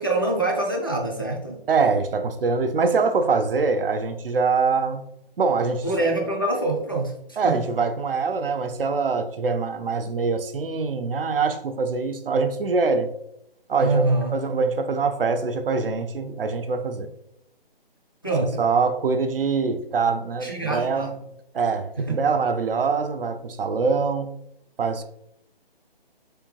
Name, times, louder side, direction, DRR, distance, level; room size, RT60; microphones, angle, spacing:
voice 1, 0.0-1.6 5.8-7.6 13.8-14.3 18.2-18.6 20.4-21.1 22.0-22.2, right 2 dB, 25° left, 0 dB, 0.4 m, -25 dB
voice 2, 1.7-5.0 5.4-5.9 7.4-13.1 13.7-17.1 18.6-21.1 21.5-24.3 24.8-25.0, right 4 dB, 65° right, 8 dB, 0.6 m, -24 dB
3.6 x 3.3 x 3.1 m, 0.78 s
hypercardioid pair, 160°, 30 cm